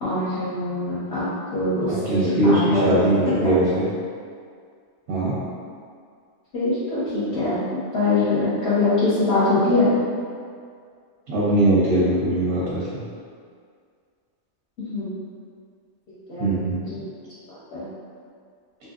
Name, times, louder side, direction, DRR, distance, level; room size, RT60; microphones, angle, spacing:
voice 1, 0.0-1.3 1.5-3.0 3.4-3.5 6.5-9.9 14.9-15.1 16.3-16.5 16.9-17.1 17.5-17.9, left 2 dB, 60° left, -12 dB, 0.9 m, -23 dB
voice 2, 1.8-3.9 5.1-5.4 11.3-12.8 16.4-16.8, right 1 dB, 85° right, -8 dB, 1.0 m, -21 dB
2.8 x 2.6 x 2.3 m, 2.2 s
omnidirectional pair, 1.4 m